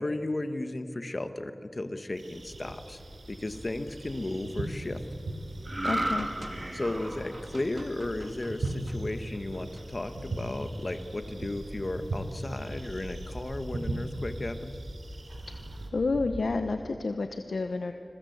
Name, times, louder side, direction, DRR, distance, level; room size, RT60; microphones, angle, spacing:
voice 1, 0.0-3.0 3.3-5.0 6.7-14.8, left 2 dB, 40° left, 9 dB, 1.5 m, -34 dB
sound 1, 2.2-15.9, right 2 dB, 90° right, 3.2 m, -40 dB
sound 2, 2.3-16.7, equal, 45° right, 7.7 m, -45 dB
sound 3, 5.6-9.1 9.5-9.8, right 1 dB, 25° right, 2.0 m, -34 dB
voice 2, 5.8-6.3 15.9-17.9, left 3 dB, 70° left, 7 dB, 1.0 m, -30 dB
27.0 x 22.0 x 8.1 m, 2.7 s
wide cardioid pair, 75°, 0 cm